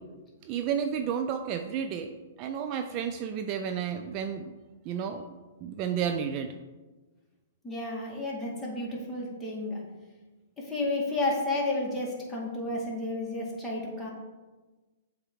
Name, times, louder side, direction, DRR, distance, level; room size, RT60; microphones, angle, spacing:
voice 1, 0.5-2.1 2.4-4.5 4.9-5.2 5.6-6.5, right 8 dB, 40° right, 6 dB, 0.4 m, -31 dB
voice 2, 7.6-9.8 10.6-14.1, left 2 dB, 10° left, -5 dB, 2.0 m, -31 dB
7.6 x 3.6 x 4.7 m, 1.2 s
hypercardioid pair, 115°, 0 cm